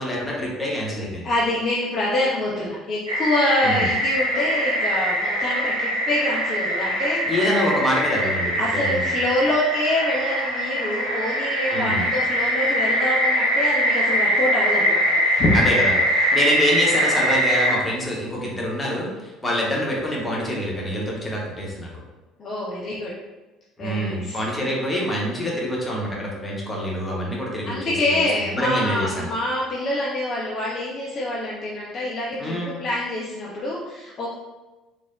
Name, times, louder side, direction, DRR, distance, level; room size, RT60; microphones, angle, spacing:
voice 1, 0.0-1.3 3.6-3.8 7.3-9.0 11.7-12.1 15.5-15.9 16.3-21.9 23.8-28.2 28.6-29.3 32.4-32.8, equal, 15° left, -4 dB, 0.9 m, -26 dB
voice 2, 1.2-7.2 8.6-15.6 16.2-16.6 22.4-23.1 23.8-24.4 27.7-34.3, left 1 dB, 40° left, -5 dB, 0.5 m, -26 dB
sound 1, 3.1-17.8, equal, 80° right, 0.4 m, -22 dB
3.3 x 2.1 x 2.4 m, 1.1 s
figure-of-eight pair, 55°, 0 cm